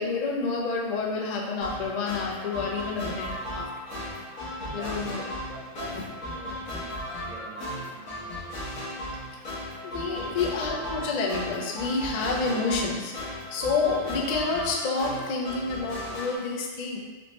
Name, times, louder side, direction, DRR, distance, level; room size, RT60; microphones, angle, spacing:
voice 1, 0.0-3.7 4.7-5.2 9.8-17.0, left 4 dB, 55° left, -1 dB, 0.4 m, -29 dB
sound 1, 1.6-16.4, equal, 80° left, 1.4 m, -36 dB
voice 2, 4.4-5.1 5.4-6.9 7.2-8.5 10.0-10.4, right 1 dB, 50° right, -4 dB, 0.9 m, -45 dB
3.3 x 3.0 x 3.0 m, 1.4 s
omnidirectional pair, 1.3 m